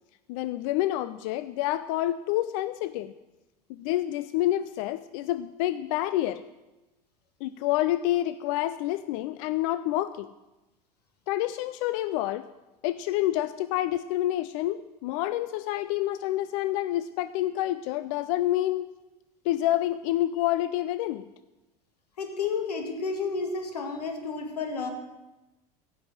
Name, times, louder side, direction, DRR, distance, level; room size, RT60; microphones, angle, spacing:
voice 1, 0.3-3.1 3.7-6.4 7.4-10.3 11.3-12.4 12.8-18.9 19.4-21.2, left 14 dB, 55° left, 15 dB, 0.5 m, -28 dB
voice 2, 22.2-24.9, left 4 dB, 80° left, 6 dB, 1.8 m, -31 dB
15.5 x 5.6 x 7.5 m, 1.0 s
figure-of-eight pair, 75°, 20 cm